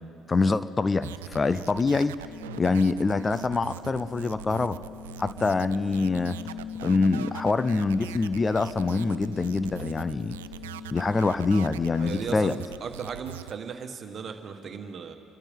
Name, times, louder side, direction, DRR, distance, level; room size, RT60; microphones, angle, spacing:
voice 1, 0.3-2.2 2.6-4.8 5.2-6.4 6.8-10.4 10.9-12.6, left 3 dB, 25° left, 15 dB, 0.5 m, -25 dB
sound 1, 1.0-13.5, right 11 dB, 85° right, 0.3 m, -42 dB
sound 2, 2.2-12.2, left 7 dB, 75° left, 0.9 m, -42 dB
voice 2, 12.0-15.1, right 6 dB, 45° right, 6 dB, 1.6 m, -36 dB
27.0 x 13.0 x 3.7 m, 2.4 s
hypercardioid pair, 60°, 0 cm